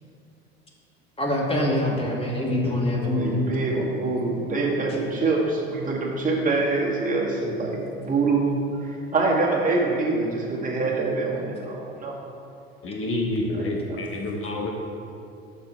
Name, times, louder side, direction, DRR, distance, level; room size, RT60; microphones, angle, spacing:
voice 1, 1.2-3.4, left 1 dB, 20° left, -2 dB, 1.9 m, -24 dB
voice 2, 3.0-12.2 13.5-14.0, right 3 dB, 25° right, -3 dB, 1.9 m, -25 dB
voice 3, 12.8-14.7, left 1 dB, 45° left, -1 dB, 1.3 m, -28 dB
6.9 x 6.8 x 4.5 m, 2.7 s
hypercardioid pair, 70°, 31 cm